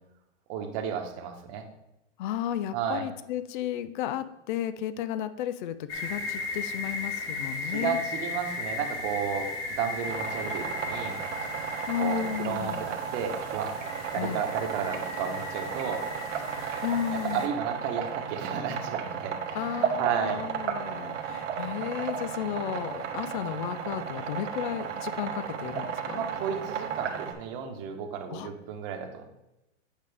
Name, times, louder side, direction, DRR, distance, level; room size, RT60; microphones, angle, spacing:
voice 1, 0.5-1.6 2.7-3.0 7.6-9.5 9.8-11.2 12.0-13.7 14.1-16.0 17.1-20.4 26.1-29.2, right 7 dB, 35° right, 3 dB, 1.2 m, -33 dB
voice 2, 2.2-8.0 11.9-12.9 14.2-14.4 16.8-17.4 19.5-26.2 28.3-28.5, left 10 dB, 45° left, 13 dB, 0.4 m, -33 dB
sound 1, 5.9-17.5, left 3 dB, 65° left, 1.8 m, -36 dB
sound 2, 10.0-27.3, right 7 dB, 80° right, 1.2 m, -34 dB
8.8 x 5.3 x 3.4 m, 0.93 s
hypercardioid pair, 145°, 36 cm